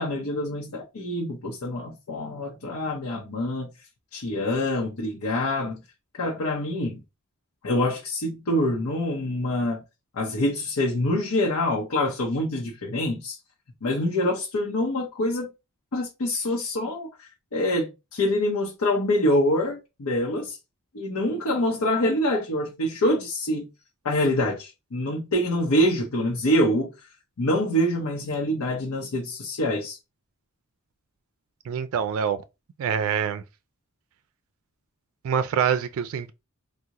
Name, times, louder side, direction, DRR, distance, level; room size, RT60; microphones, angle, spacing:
voice 1, 0.0-3.7 4.1-5.8 6.2-7.0 7.6-9.8 10.1-13.4 13.8-15.5 15.9-20.6 20.9-23.7 24.0-26.9 27.4-30.0, left 1 dB, 85° left, 0.7 m, -25 dB
voice 2, 31.7-32.4 32.8-33.4 35.2-36.3, right 7 dB, 65° right, 0.3 m, -25 dB
3.6 x 2.0 x 2.9 m
head